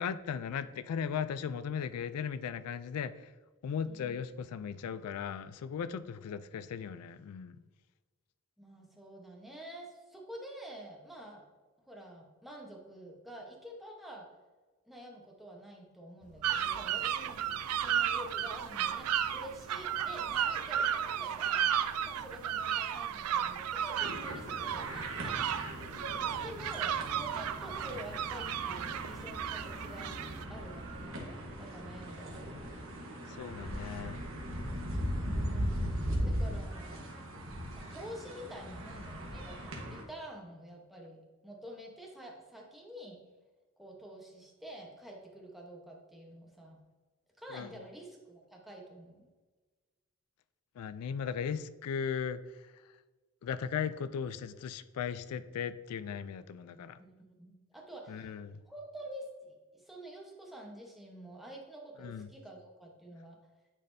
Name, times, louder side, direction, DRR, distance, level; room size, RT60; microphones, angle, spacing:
voice 1, 0.0-3.1 3.6-7.6 33.4-34.2 47.5-47.7 50.8-52.4 53.4-57.0 58.1-58.6 62.0-62.3, left 7 dB, 85° left, 14 dB, 0.3 m, -37 dB
voice 2, 3.8-4.3 8.6-11.4 11.9-14.3 14.9-21.7 22.0-25.4 26.4-30.2 30.5-32.7 35.2-37.0 37.7-43.2 43.8-46.8 47.4-49.3 56.7-58.3 58.7-63.4, right 1 dB, ahead, -1 dB, 0.9 m, -48 dB
sound 1, 16.2-31.1, right 1 dB, 35° right, 0.7 m, -53 dB
sound 2, 16.4-30.4, right 9 dB, 85° right, 0.4 m, -34 dB
sound 3, 24.0-40.0, equal, 60° right, 1.3 m, -39 dB
9.7 x 4.2 x 2.6 m, 1.3 s
head